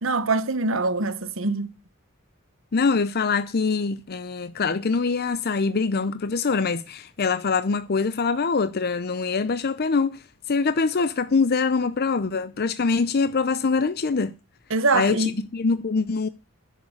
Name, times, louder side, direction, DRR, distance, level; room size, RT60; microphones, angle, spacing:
voice 1, 0.0-1.7 14.7-15.3, right 3 dB, 70° right, 1.3 m, -23 dB
voice 2, 2.7-14.3 14.9-16.3, left 4 dB, 50° left, 0.6 m, -24 dB
10.5 x 7.5 x 8.1 m
head